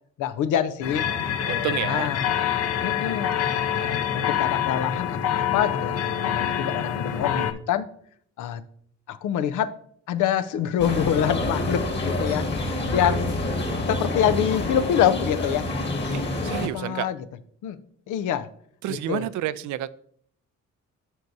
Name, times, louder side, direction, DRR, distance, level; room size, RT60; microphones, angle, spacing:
voice 1, 0.2-1.1 1.5-2.3 2.8-3.3 3.7-7.9 8.4-8.6 9.1-9.7 10.1-13.4 13.9-15.7 16.3-17.2 17.6-17.8 18.1-18.5 18.9-19.3, left 9 dB, 80° left, 0.6 m, -26 dB
sound 1, 0.8-7.5, left 9 dB, 55° left, 0.9 m, -26 dB
voice 2, 1.5-2.1 16.1-17.1 18.8-19.9, right 12 dB, 75° right, 0.5 m, -29 dB
sound 2, 10.8-16.7, left 2 dB, 35° left, 1.7 m, -27 dB
12.5 x 4.6 x 2.7 m
cardioid pair, 90°, 30 cm